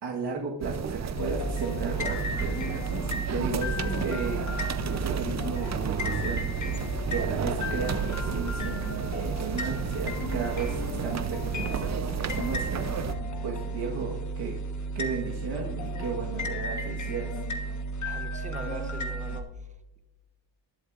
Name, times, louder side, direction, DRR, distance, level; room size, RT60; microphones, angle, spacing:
voice 1, 0.0-4.4 4.9-6.5 7.1-8.8 9.1-14.5 14.9-17.4, right 5 dB, 60° right, -1 dB, 1.5 m, -35 dB
sound 1, 0.6-13.1, right 6 dB, 35° right, 0.6 m, -33 dB
sound 2, 1.1-19.4, right 1 dB, 40° left, 1.4 m, -33 dB
voice 2, 18.0-19.7, right 3 dB, 15° right, 7 dB, 1.0 m, -42 dB
20.5 x 8.0 x 2.5 m, 1.1 s
cardioid pair, 105°, 45 cm